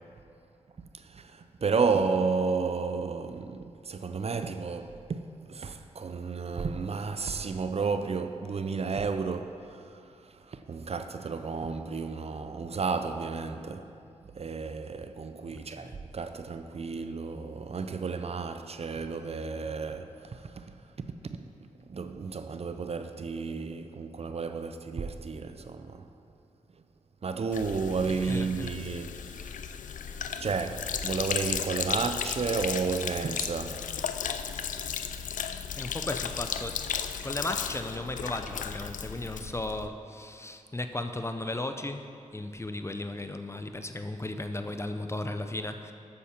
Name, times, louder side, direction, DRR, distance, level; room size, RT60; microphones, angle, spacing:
voice 1, 0.9-5.2 5.5-13.9 14.3-20.6 21.2-21.4 21.9-26.1 27.2-29.6 30.4-33.9, right 5 dB, 50° right, 0.5 m, -32 dB
Sink (filling or washing), 27.5-39.9, left 8 dB, 80° left, 0.4 m, -35 dB
voice 2, 28.0-28.7 35.4-36.9 37.2-42.1 42.3-45.9, left 2 dB, 20° left, 0.6 m, -36 dB
8.6 x 7.0 x 4.4 m
cardioid pair, 45°, 13 cm